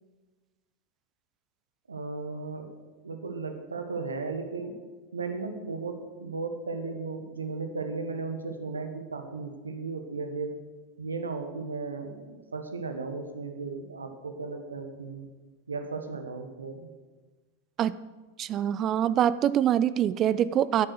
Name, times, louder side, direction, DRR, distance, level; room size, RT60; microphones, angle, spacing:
voice 1, 1.9-2.7 3.0-4.8 5.1-10.6 11.0-15.3 15.7-16.9, right 4 dB, 75° right, 6 dB, 1.4 m, -35 dB
voice 2, 18.4-20.9, right 10 dB, 30° right, 17 dB, 0.4 m, -24 dB
10.0 x 8.8 x 6.9 m, 1.3 s
figure-of-eight pair, 90°, 0 cm